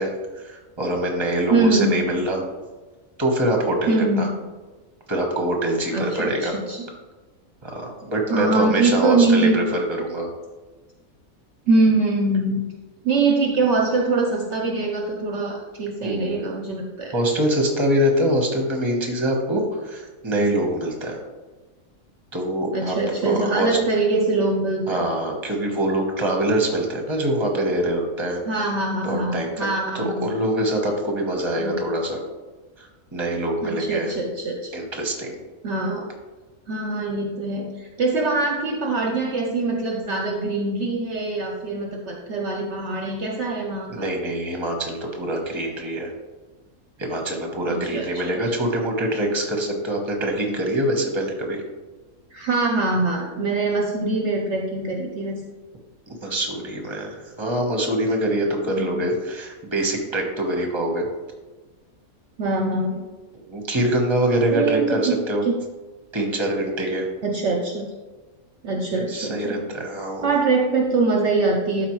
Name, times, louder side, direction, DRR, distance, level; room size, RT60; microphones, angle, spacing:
voice 1, 0.0-2.4 3.2-4.3 5.1-6.5 7.6-10.3 16.0-16.5 17.1-21.2 22.3-22.9 23.2-23.8 24.9-28.4 29.0-29.7 29.9-32.2 32.8-32.9 33.1-34.1 34.7-35.4 43.9-46.1 47.0-51.6 56.1-61.1 63.5-65.4 66.1-67.1 69.1-70.3, right 1 dB, 20° right, 2 dB, 1.1 m, -24 dB
voice 2, 1.5-2.1 3.9-4.5 5.9-6.9 8.3-9.6 11.7-12.7 13.0-17.1 22.7-25.0 28.5-30.3 31.6-31.8 33.6-34.7 35.6-36.1 36.7-44.1 47.7-48.5 52.3-55.4 58.7-59.1 62.4-63.1 64.5-65.2 65.4-65.5 67.2-67.9 68.6-69.6 70.2-71.9, right 3 dB, 60° right, 2 dB, 0.9 m, -23 dB
12.0 x 4.3 x 3.1 m, 1.3 s
omnidirectional pair, 1.5 m